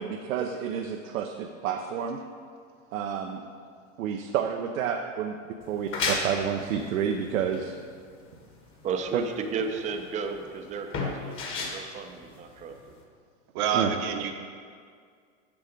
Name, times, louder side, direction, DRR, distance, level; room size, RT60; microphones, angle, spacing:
voice 1, 0.0-2.2 2.9-3.4 4.0-5.4 5.7-7.8 9.1-9.2 13.7-13.9, right 8 dB, 80° right, 3 dB, 0.7 m, -29 dB
sound 1, 5.6-13.0, left 3 dB, 30° left, 1.3 m, -35 dB
voice 2, 8.8-11.4 11.7-12.7, right 5 dB, 20° right, 5 dB, 0.5 m, -33 dB
voice 3, 13.5-14.3, right 7 dB, 50° right, 4 dB, 0.9 m, -27 dB
7.0 x 6.1 x 5.1 m, 2.1 s
hypercardioid pair, 120°, 40 cm